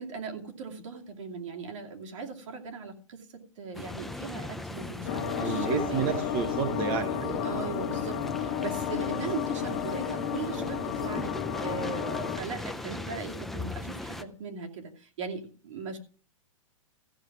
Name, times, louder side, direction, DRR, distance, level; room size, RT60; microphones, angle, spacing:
voice 1, 0.0-6.2 7.2-16.0, right 5 dB, 65° right, 2 dB, 2.5 m, -39 dB
sound 1, 3.7-14.2, left 2 dB, ahead, 0.4 m, -39 dB
sound 2, 5.1-12.4, left 8 dB, 50° left, 1.8 m, -32 dB
voice 2, 5.4-7.3, right 6 dB, 30° right, 6 dB, 1.0 m, -30 dB
14.5 x 6.6 x 6.0 m, 0.40 s
hypercardioid pair, 155°, 17 cm